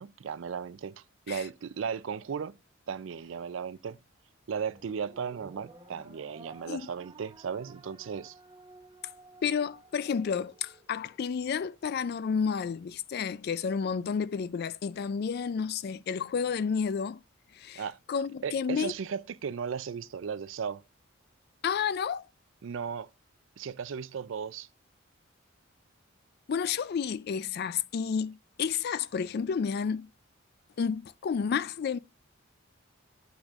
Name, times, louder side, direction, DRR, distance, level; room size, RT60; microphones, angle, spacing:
voice 1, 0.0-2.6 2.9-4.0 4.5-8.4 17.8-18.0 18.4-20.8 22.6-23.1 23.6-24.7, right 6 dB, 65° right, 0.4 m, -36 dB
sound 1, 4.7-11.3, right 2 dB, 25° right, 0.9 m, -53 dB
voice 2, 9.4-17.2 17.5-17.8 18.1-18.9 21.6-22.3 26.5-30.1 30.8-32.0, left 6 dB, 50° left, 0.3 m, -31 dB
8.1 x 6.1 x 2.4 m
head